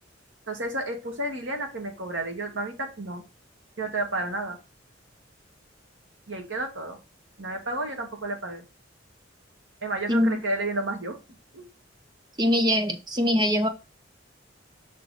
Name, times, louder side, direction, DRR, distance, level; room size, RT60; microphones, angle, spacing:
voice 1, 0.5-3.2 3.8-4.6 6.3-7.0 7.4-8.6 9.8-11.2 11.5-11.6, right 2 dB, 75° right, 1.8 m, -31 dB
voice 2, 12.4-13.7, left 1 dB, 25° right, 1.0 m, -22 dB
5.8 x 4.3 x 4.1 m
head